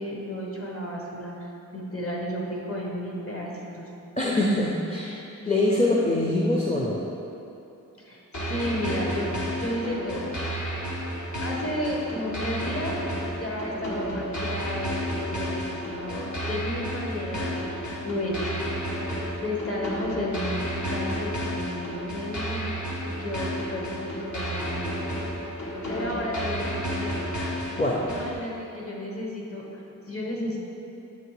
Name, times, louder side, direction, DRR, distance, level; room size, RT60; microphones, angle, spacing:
voice 1, 0.0-3.9 8.0-8.2 8.5-10.6 11.4-13.0 13.4-18.6 19.4-25.0 25.9-27.3 28.1-30.6, left 1 dB, 45° left, -3 dB, 1.2 m, -33 dB
voice 2, 4.2-5.1 5.5-7.0 27.8-28.0, left 1 dB, 20° left, -3 dB, 0.6 m, -23 dB
sound 1, 8.3-28.3, equal, 65° left, 1.3 m, -32 dB
7.7 x 3.3 x 4.7 m, 2.9 s
wide cardioid pair, 90°, 32 cm